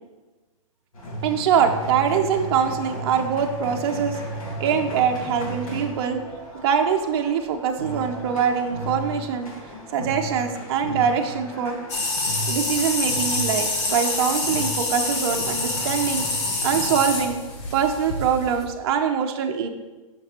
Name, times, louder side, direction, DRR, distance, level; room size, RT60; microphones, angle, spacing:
sound 1, 0.9-17.3, right 1 dB, 80° left, 2.2 m, -35 dB
voice 1, 1.2-4.2 4.6-6.2 6.5-9.5 9.9-11.8 12.5-16.3 16.6-17.4 17.7-19.7, right 7 dB, 50° right, 4 dB, 0.7 m, -23 dB
sound 2, 11.9-18.6, left 3 dB, 55° left, 1.6 m, -26 dB
6.0 x 5.7 x 4.3 m, 1.2 s
hypercardioid pair, 145°, 18 cm